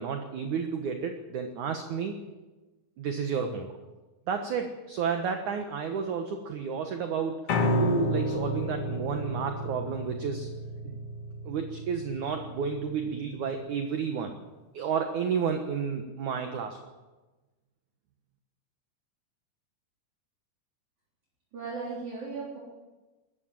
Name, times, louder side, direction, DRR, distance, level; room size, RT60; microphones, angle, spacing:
voice 1, 0.0-2.2 3.0-3.7 4.3-10.5 10.8-11.0 11.4-14.4 14.7-16.8, right 6 dB, 65° right, 5 dB, 2.1 m, -31 dB
Piano, 7.5-13.7, left 1 dB, 50° left, 1.8 m, -31 dB
voice 2, 21.5-22.6, right 4 dB, 45° right, -5 dB, 4.7 m, -36 dB
20.5 x 15.0 x 9.2 m, 1.2 s
omnidirectional pair, 5.1 m